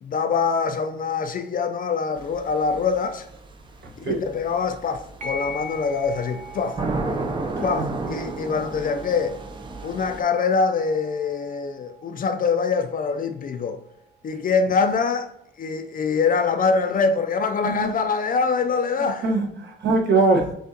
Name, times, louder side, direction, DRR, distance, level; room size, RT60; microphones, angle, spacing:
voice 1, 0.0-3.3 4.0-6.8 7.6-9.4 9.8-13.8 14.2-15.3 15.6-19.3, left 5 dB, 45° left, 0.5 m, -24 dB
sound 1, 2.2-10.2, right 3 dB, 25° right, 0.6 m, -33 dB
sound 2, 5.2-14.2, equal, 40° right, 1.1 m, -42 dB
voice 2, 19.0-20.5, right 3 dB, 60° right, 1.2 m, -22 dB
6.3 x 2.4 x 2.8 m
cardioid pair, 90°, 20 cm